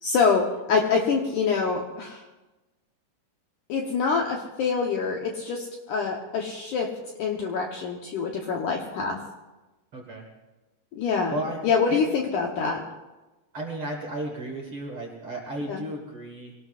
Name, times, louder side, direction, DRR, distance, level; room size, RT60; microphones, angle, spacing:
voice 1, 0.0-2.2 3.7-6.9 7.2-9.2 11.0-11.4 11.6-12.8 15.7-15.8, left 5 dB, 65° left, 1 dB, 2.1 m, -25 dB
voice 2, 9.9-10.3 11.3-11.6 11.9-12.0 13.5-16.5, right 1 dB, 40° right, -1 dB, 2.1 m, -34 dB
25.5 x 18.5 x 2.5 m, 1.1 s
omnidirectional pair, 4.8 m